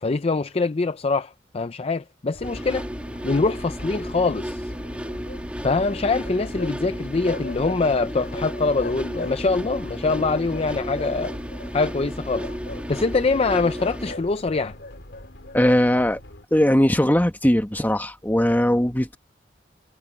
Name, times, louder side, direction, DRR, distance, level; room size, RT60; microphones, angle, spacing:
voice 1, 0.0-2.9 3.2-4.7 5.6-11.3 11.7-12.5 12.9-14.8, left 3 dB, 35° left, 0.5 m, -24 dB
sound 1, 2.3-16.4, left 1 dB, 75° left, 3.5 m, -44 dB
sound 2, 2.4-14.1, equal, 5° right, 2.2 m, -33 dB
sound 3, 4.8-6.8 7.0-7.8 8.1-9.6 10.0-11.7 12.3-12.9 13.5-15.9, left 2 dB, 55° left, 6.0 m, -39 dB
voice 2, 15.5-16.2 16.5-19.2, equal, 10° left, 1.4 m, -19 dB
head